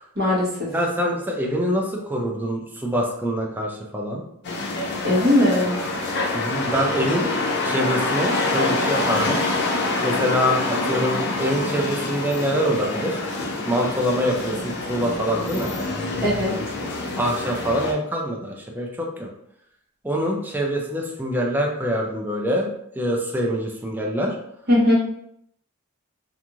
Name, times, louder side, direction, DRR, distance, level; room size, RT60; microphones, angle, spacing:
voice 1, 0.2-0.7 5.0-5.8 16.2-16.6 24.7-24.9, left 1 dB, 50° right, -5 dB, 1.0 m, -19 dB
voice 2, 0.7-4.2 6.3-7.3 7.6-9.4 10.0-13.2 13.6-15.7 17.2-19.3 20.0-22.7 23.0-24.3, equal, 10° right, 0 dB, 0.4 m, -25 dB
City Street Weekend, 4.4-17.9, left 2 dB, 50° left, 0.5 m, -26 dB
2.5 x 2.4 x 3.0 m, 0.73 s
head